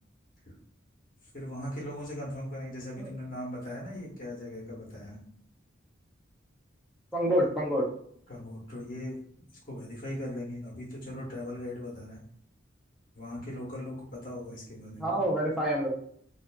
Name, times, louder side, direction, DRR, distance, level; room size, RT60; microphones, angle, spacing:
voice 1, 1.3-5.2 8.3-9.2 9.7-12.2 13.1-15.2, left 1 dB, 45° left, -3 dB, 1.0 m, -39 dB
voice 2, 7.1-7.9 15.0-15.9, equal, ahead, -5 dB, 0.6 m, -27 dB
2.4 x 2.3 x 2.2 m, 0.63 s
head